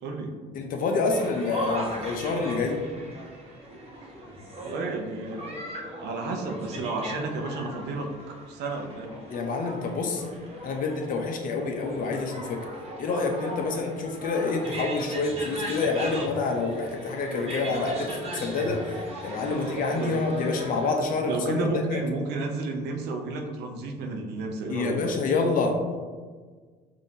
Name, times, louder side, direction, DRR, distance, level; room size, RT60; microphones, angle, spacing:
voice 1, 0.0-0.3 4.6-5.7 6.0-9.1 19.3-20.2 21.3-25.0, right 3 dB, 80° right, 2 dB, 0.7 m, -32 dB
voice 2, 0.5-2.8 9.3-10.2 10.6-12.6 13.0-18.8 19.2-21.6 21.9-22.0 24.7-25.7, left 3 dB, 55° left, 2 dB, 0.7 m, -27 dB
sound 1, 1.1-20.9, equal, 35° right, 1.0 m, -38 dB
5.1 x 2.7 x 2.7 m, 1.5 s
cardioid pair, 110°, 17 cm